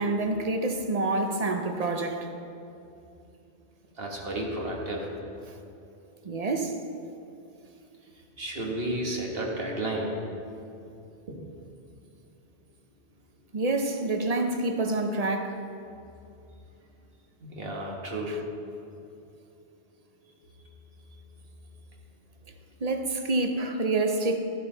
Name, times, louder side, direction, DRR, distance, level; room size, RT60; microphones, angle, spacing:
voice 1, 0.0-2.3 6.2-6.8 13.5-15.6 22.8-24.4, right 2 dB, 40° right, 0.7 m, -27 dB
voice 2, 3.9-5.1 8.4-10.1 11.3-11.4 17.4-18.4 21.1-21.2, right 1 dB, 55° right, 1.7 m, -32 dB
12.5 x 11.0 x 3.9 m
omnidirectional pair, 1.2 m